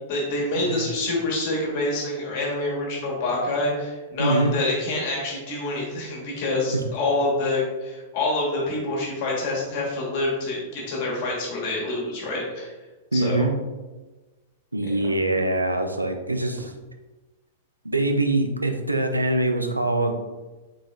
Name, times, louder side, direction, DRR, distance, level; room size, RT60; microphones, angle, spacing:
voice 1, 0.1-12.7 13.1-13.4 14.8-15.1, left 2 dB, 45° left, -4 dB, 1.5 m, -27 dB
voice 2, 4.2-4.5 13.1-13.5 14.7-16.7 17.8-20.1, right 2 dB, 85° right, 4 dB, 0.4 m, -23 dB
4.1 x 3.8 x 2.5 m, 1.2 s
figure-of-eight pair, 100°, 0 cm